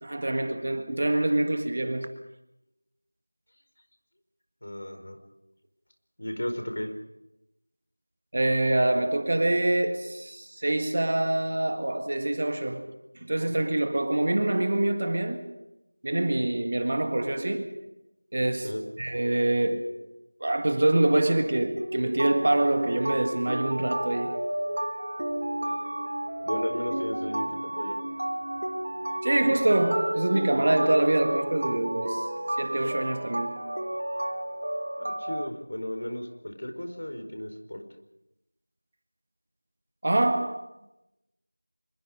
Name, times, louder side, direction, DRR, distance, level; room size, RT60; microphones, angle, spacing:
voice 1, 0.0-2.2 8.3-12.9 13.3-15.6 16.0-17.8 18.3-20.1 20.4-24.4 29.2-32.2 32.6-33.7 40.0-40.6, right 1 dB, 30° right, 1.8 m, -25 dB
voice 2, 4.6-5.2 6.2-6.9 18.6-18.8 26.4-27.9 35.0-37.8, left 1 dB, 50° left, 4.7 m, -34 dB
sound 1, 21.8-35.5, right 1 dB, 55° right, 1.7 m, -32 dB
26.0 x 23.0 x 5.2 m
figure-of-eight pair, 175°, 0 cm